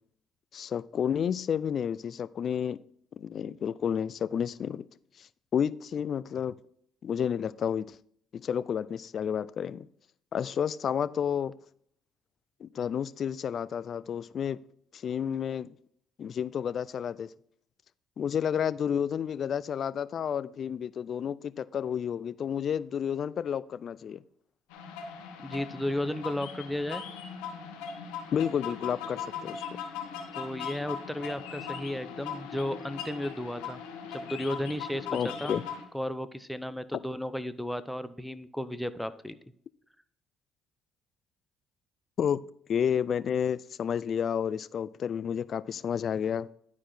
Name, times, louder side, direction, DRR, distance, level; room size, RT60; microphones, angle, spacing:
voice 1, 0.5-2.8 3.2-4.9 5.2-5.3 5.5-6.5 7.0-8.0 8.3-9.9 10.3-11.5 12.6-14.6 14.9-15.7 16.2-17.3 18.2-24.2 28.3-29.6 35.1-35.6 42.2-42.4 42.7-46.5, left 8 dB, 55° left, 18 dB, 0.4 m, -31 dB
sound 1, 24.7-35.8, left 7 dB, 90° left, 1.5 m, -39 dB
voice 2, 25.4-27.0 30.3-33.8 34.1-35.5 35.9-39.4, left 1 dB, ahead, 12 dB, 0.7 m, -34 dB
11.5 x 4.8 x 4.3 m, 0.66 s
supercardioid pair, 70°, 0 cm